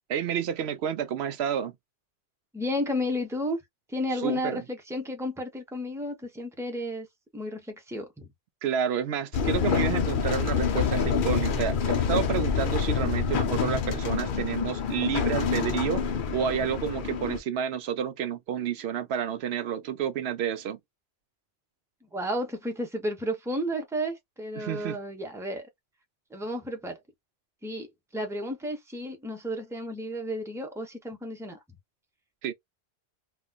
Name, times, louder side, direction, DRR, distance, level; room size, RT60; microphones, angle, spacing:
voice 1, 0.1-1.7 4.2-4.6 8.6-16.0 16.3-20.8 24.6-25.0 32.4-32.5, right 8 dB, 80° right, 0.8 m, -30 dB
voice 2, 2.5-3.6 3.9-7.1 7.3-8.3 22.0-25.7 26.3-27.0 27.6-31.6, equal, 5° right, 0.8 m, -32 dB
sound 1, 9.3-17.4, left 6 dB, 60° left, 0.8 m, -27 dB
3.9 x 2.3 x 2.2 m
omnidirectional pair, 1.1 m